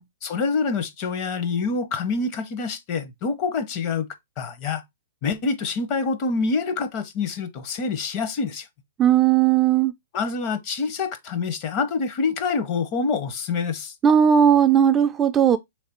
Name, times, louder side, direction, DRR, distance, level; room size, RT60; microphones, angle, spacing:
voice 1, 0.2-4.1 4.4-4.8 5.2-8.7 10.1-13.9, left 4 dB, 40° left, 0.7 m, -26 dB
voice 2, 9.0-9.9 14.0-15.6, right 9 dB, 20° right, 0.3 m, -17 dB
3.3 x 3.2 x 4.3 m
hypercardioid pair, 140°, 0 cm